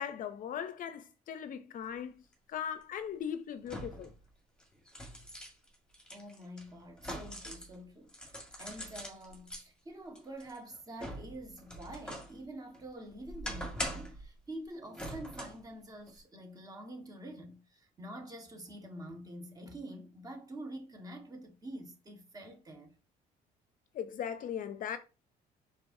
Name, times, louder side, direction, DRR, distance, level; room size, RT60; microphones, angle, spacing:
voice 1, 0.0-4.1 23.9-25.0, left 8 dB, 55° left, 0.5 m, -39 dB
sound 1, 2.3-2.4 3.6-4.1 4.6-7.7 8.1-9.6 10.2-12.3 12.7-14.2 14.9-15.6 16.1-16.2, equal, 5° left, 1.7 m, -42 dB
voice 2, 6.1-22.9, right 1 dB, 20° right, 1.4 m, -47 dB
4.6 x 4.0 x 2.6 m
cardioid pair, 110°, 17 cm